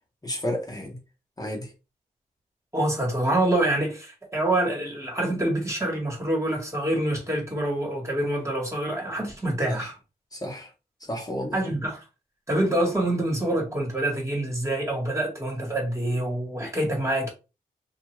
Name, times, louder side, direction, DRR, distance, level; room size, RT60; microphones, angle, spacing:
voice 1, 0.2-1.0 1.4-1.7 9.7-9.9 10.3-10.7 11.0-11.6, equal, 25° left, 1.0 m, -32 dB
voice 2, 2.7-9.9 11.5-12.0 12.5-17.3, right 1 dB, 20° right, 1.4 m, -26 dB
2.6 x 2.3 x 3.1 m
cardioid pair, 60°, 15 cm